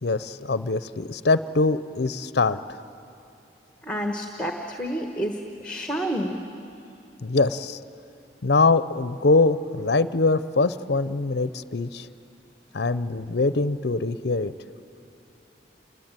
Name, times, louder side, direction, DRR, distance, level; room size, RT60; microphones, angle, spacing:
voice 1, 0.0-2.6 7.2-7.8 8.4-12.1 12.7-14.5, left 3 dB, 65° left, 14 dB, 0.6 m, -23 dB
voice 2, 3.8-6.4, equal, 5° left, 4 dB, 1.2 m, -29 dB
28.0 x 21.5 x 9.0 m, 2.8 s
head